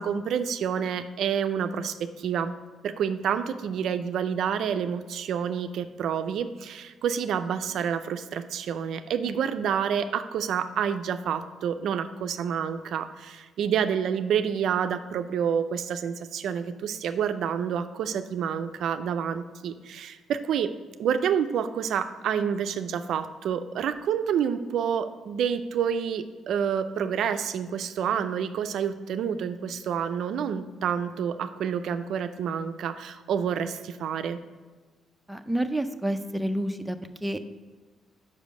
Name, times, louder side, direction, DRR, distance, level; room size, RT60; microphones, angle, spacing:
voice 1, 0.0-2.5 2.8-20.7 21.0-34.4, right 8 dB, 75° right, 10 dB, 0.4 m, -28 dB
voice 2, 35.3-37.4, right 1 dB, 5° right, 7 dB, 0.5 m, -29 dB
5.3 x 5.1 x 6.4 m, 1.4 s
cardioid pair, 90°, 0 cm